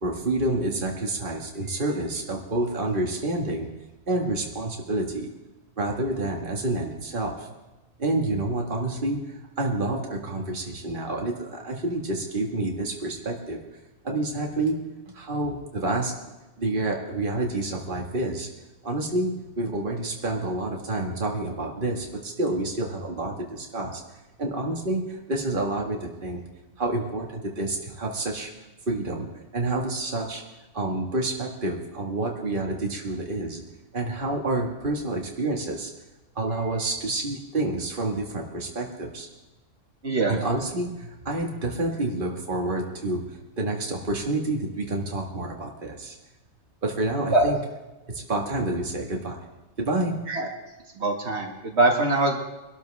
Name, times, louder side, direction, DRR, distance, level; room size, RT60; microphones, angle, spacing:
voice 1, 0.0-3.7 4.1-5.3 5.8-7.5 8.0-13.6 14.0-14.8 15.1-16.2 16.6-18.5 18.8-24.0 24.4-26.4 26.8-28.5 28.9-29.3 29.5-30.4 30.7-33.6 33.9-35.9 36.4-39.3 40.3-43.2 43.6-46.2 46.8-47.6 48.1-49.4 49.8-50.2, right 2 dB, 50° right, 0 dB, 2.0 m, -28 dB
voice 2, 40.0-40.4 47.3-47.5 50.3-50.5 51.0-52.4, right 2 dB, 75° right, 1 dB, 2.2 m, -22 dB
24.0 x 12.5 x 3.5 m, 1.1 s
omnidirectional pair, 1.2 m